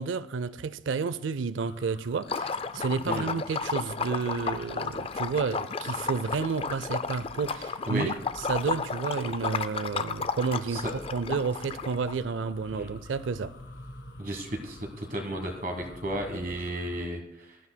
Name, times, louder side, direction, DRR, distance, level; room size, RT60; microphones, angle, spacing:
voice 1, 0.0-13.5, right 5 dB, 85° right, 0.4 m, -31 dB
sound 1, 1.6-17.0, left 1 dB, 75° left, 1.5 m, -49 dB
Liquid, 2.2-12.1, left 5 dB, 30° left, 0.4 m, -33 dB
voice 2, 14.2-17.6, right 1 dB, 45° right, 1.3 m, -33 dB
20.0 x 12.5 x 2.2 m
head